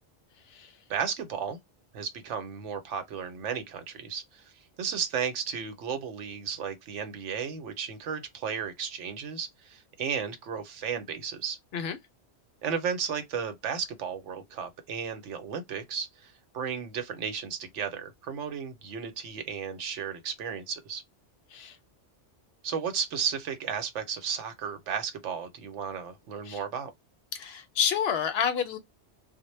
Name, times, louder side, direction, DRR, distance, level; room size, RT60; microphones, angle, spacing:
voice 1, 0.9-1.6 1.9-4.5 4.8-11.6 12.6-21.0 22.6-26.9, right 7 dB, 85° right, 1.0 m, -34 dB
voice 2, 27.3-28.8, left 7 dB, 65° left, 0.7 m, -29 dB
2.1 x 2.1 x 2.9 m
omnidirectional pair, 1.2 m